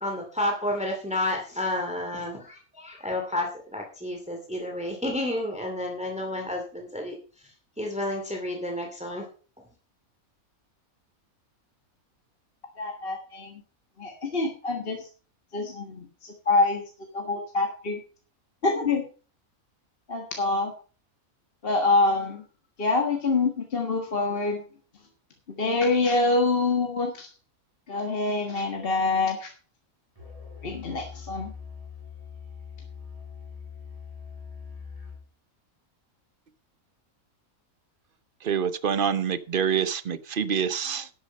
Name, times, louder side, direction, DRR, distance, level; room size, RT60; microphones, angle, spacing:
voice 1, 0.0-7.1 7.8-9.2, left 1 dB, 5° right, 2 dB, 2.4 m, -30 dB
voice 2, 12.8-13.6 14.0-15.1 15.5-18.0 18.6-19.0 20.1-20.7 21.6-22.4 22.8-24.6 25.6-27.3 27.9-29.5 30.6-31.5, left 3 dB, 40° left, 2 dB, 1.7 m, -26 dB
Musical instrument, 30.1-35.3, left 6 dB, 25° right, 5.5 m, -42 dB
voice 3, 38.4-41.1, right 7 dB, 45° right, 14 dB, 0.9 m, -26 dB
12.0 x 8.4 x 5.3 m, 0.39 s
omnidirectional pair, 1.5 m